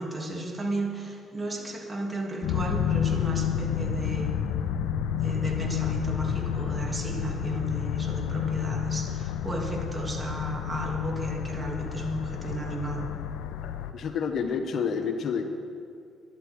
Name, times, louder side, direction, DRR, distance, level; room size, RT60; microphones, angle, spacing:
voice 1, 0.0-4.4 5.2-13.1, right 1 dB, 25° right, 0 dB, 2.9 m, -33 dB
sound 1, 2.4-13.9, left 9 dB, 85° left, 0.6 m, -30 dB
voice 2, 13.6-15.5, left 6 dB, 65° left, 7 dB, 1.1 m, -29 dB
12.0 x 11.5 x 6.4 m, 2.3 s
supercardioid pair, 60°, 0 cm